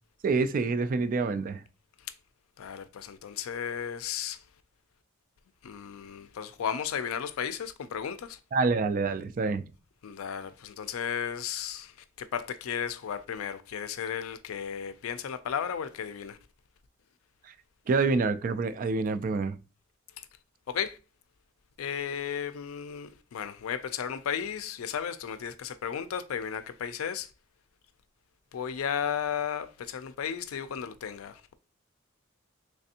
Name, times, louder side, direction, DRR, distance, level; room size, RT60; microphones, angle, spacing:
voice 1, 0.2-1.6 8.5-9.6 17.4-17.5 17.9-19.6, right 4 dB, 40° right, 0.3 m, -27 dB
voice 2, 2.6-4.4 5.6-8.4 10.0-16.4 20.2-20.3 20.7-21.0 21.8-27.3 28.5-31.6, left 8 dB, 90° left, 0.4 m, -34 dB
3.3 x 3.3 x 2.7 m
head